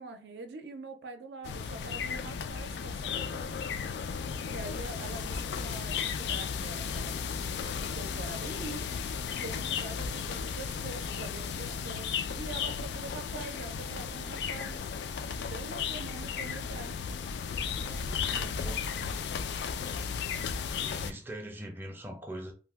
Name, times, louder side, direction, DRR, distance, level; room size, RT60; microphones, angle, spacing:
voice 1, 0.0-3.6 4.4-8.9 9.4-14.8 15.3-16.9 17.7-18.6, right 3 dB, 70° right, 7 dB, 0.5 m, -45 dB
sound 1, 1.4-21.1, left 6 dB, 70° left, 0.3 m, -35 dB
sound 2, 8.4-11.6 12.2-14.0, left 3 dB, 90° left, 1.3 m, -55 dB
voice 2, 18.2-18.8 20.8-22.5, right 1 dB, 10° right, 2 dB, 0.5 m, -42 dB
2.7 x 2.1 x 3.3 m, 0.37 s
head